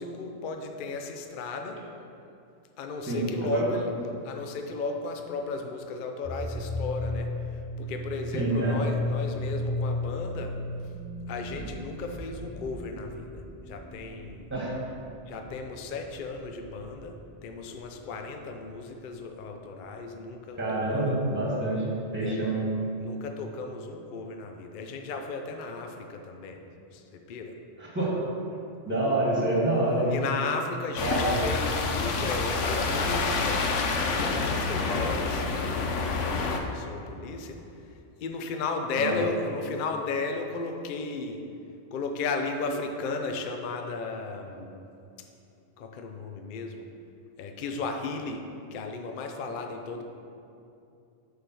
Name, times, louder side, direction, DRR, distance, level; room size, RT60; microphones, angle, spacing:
voice 1, 0.0-1.8 2.8-3.9 4.2-10.6 11.3-14.5 15.3-17.2 17.4-21.1 22.2-22.5 23.0-26.6 26.9-27.6 30.1-33.7 34.1-35.9 36.4-37.6 38.2-41.4 41.9-44.9 45.8-46.9 47.4-48.5 48.7-50.0, left 3 dB, 55° left, 4 dB, 0.6 m, -35 dB
voice 2, 3.1-3.7 8.3-8.8 14.5-14.7 20.5-21.9 22.1-22.7 27.8-28.2 28.5-30.1 31.0-31.4 39.0-39.1, right 1 dB, 10° right, -5 dB, 1.4 m, -27 dB
sound 1, 6.2-17.5, left 2 dB, 10° left, 0.7 m, -34 dB
sound 2, 31.0-36.6, left 4 dB, 75° left, 1.0 m, -28 dB
8.0 x 3.4 x 6.0 m, 2.6 s
omnidirectional pair, 1.3 m